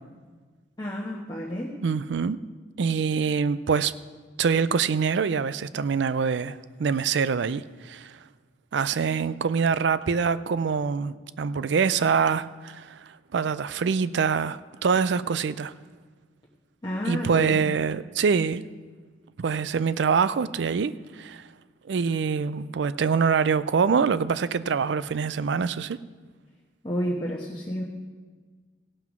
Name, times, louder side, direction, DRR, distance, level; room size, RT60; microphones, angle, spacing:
voice 1, 0.8-1.8 16.8-17.7 26.8-27.8, equal, 25° left, -5 dB, 1.2 m, -30 dB
voice 2, 1.8-2.4 2.8-3.9 4.4-8.1 8.7-13.0 13.3-15.7 17.1-18.6 19.4-21.4 21.9-26.0, right 6 dB, 75° right, 16 dB, 0.4 m, -25 dB
16.5 x 5.8 x 6.0 m, 1.4 s
head